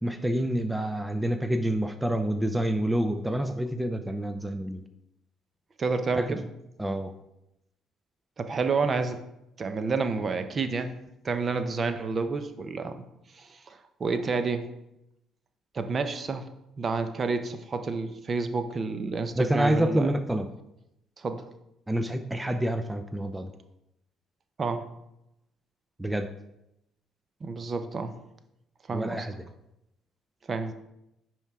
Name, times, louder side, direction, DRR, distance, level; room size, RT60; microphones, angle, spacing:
voice 1, 0.0-4.8 6.1-6.3 6.8-7.1 19.4-20.5 21.9-23.5 26.0-26.3 28.9-29.3, right 1 dB, 10° right, 8 dB, 0.6 m, -27 dB
voice 2, 5.8-6.4 8.4-9.2 9.6-10.9 11.2-13.0 13.3-14.7 15.7-16.5 16.8-20.1 21.2-21.5 24.6-24.9 27.4-28.2 28.9-29.3 30.5-30.7, right 4 dB, 40° right, 9 dB, 0.8 m, -29 dB
10.0 x 4.6 x 3.6 m, 0.86 s
supercardioid pair, 65°, 0 cm